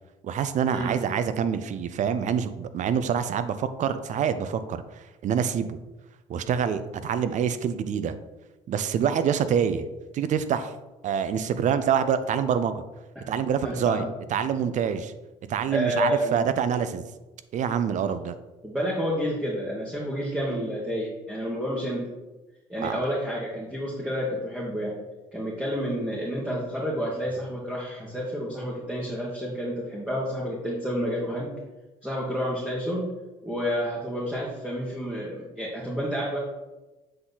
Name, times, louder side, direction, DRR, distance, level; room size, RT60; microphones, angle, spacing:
voice 1, 0.2-5.8 6.3-8.1 8.7-9.9 10.1-10.7 11.0-12.8 13.3-15.1 15.5-17.1 17.5-18.3 22.8-23.0, right 8 dB, 55° right, 12 dB, 0.6 m, -26 dB
voice 2, 13.6-14.1 15.7-16.4 18.6-22.0 22.7-25.0 25.3-31.5 32.0-33.1 33.4-36.4, equal, 5° right, -5 dB, 1.7 m, -29 dB
7.8 x 3.8 x 4.1 m, 1.1 s
hypercardioid pair, 65°, 15 cm